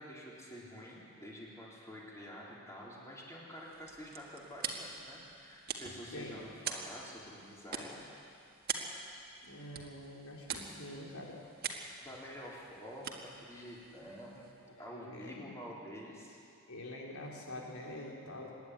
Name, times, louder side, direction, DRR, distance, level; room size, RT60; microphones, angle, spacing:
voice 1, 0.0-8.3 12.0-16.4, equal, 15° left, -5 dB, 4.1 m, -48 dB
sound 1, 3.6-14.8, right 6 dB, 45° right, 1.7 m, -45 dB
voice 2, 9.4-11.4 14.7-15.7 16.7-18.5, left 1 dB, 85° left, -2 dB, 3.8 m, -46 dB
25.0 x 10.5 x 9.7 m, 2.5 s
head